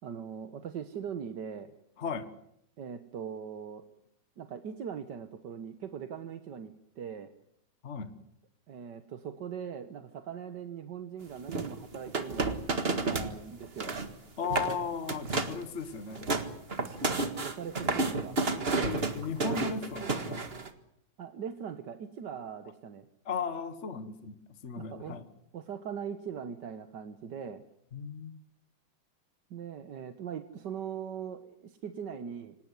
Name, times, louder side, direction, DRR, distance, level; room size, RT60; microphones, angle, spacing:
voice 1, 0.0-1.7 2.8-3.8 4.4-7.3 8.7-12.6 12.9-13.9 17.4-18.4 21.2-23.1 24.7-25.2 25.5-27.6 29.5-32.6, right 7 dB, 60° right, 9 dB, 1.7 m, -40 dB
voice 2, 2.0-2.3 7.8-8.2 14.4-16.2 18.8-20.4 23.2-24.4 24.6-25.2 27.9-28.4, left 6 dB, 40° left, 11 dB, 1.5 m, -36 dB
sound 1, 11.5-13.3 13.6-14.1 14.4-14.8 15.1-15.6 16.0-20.7, right 3 dB, 30° right, 1.8 m, -31 dB
26.0 x 18.5 x 9.6 m, 0.76 s
omnidirectional pair, 2.2 m